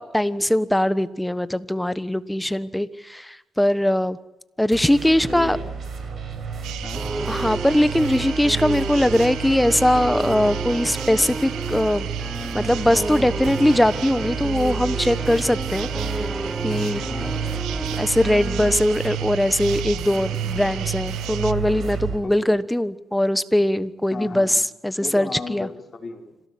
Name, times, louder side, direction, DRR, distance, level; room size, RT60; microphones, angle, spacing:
voice 1, 0.0-4.2 4.6-5.6 7.3-12.1 12.5-16.3 16.6-17.0 17.7-25.7, left 1 dB, 5° left, 14 dB, 1.2 m, -21 dB
sound 1, 4.7-22.2, right 6 dB, 50° right, 5.9 m, -30 dB
voice 2, 4.8-5.7 6.8-7.0 17.0-17.4 22.2-22.6 24.1-24.6 25.0-26.4, left 4 dB, 30° left, 2 dB, 5.0 m, -35 dB
sound 2, 6.6-21.5, right 12 dB, 90° right, 1.1 m, -37 dB
sound 3, 6.9-18.9, right 2 dB, 15° right, 0.8 m, -32 dB
26.5 x 17.5 x 8.6 m, 0.96 s
cardioid pair, 90°, 0 cm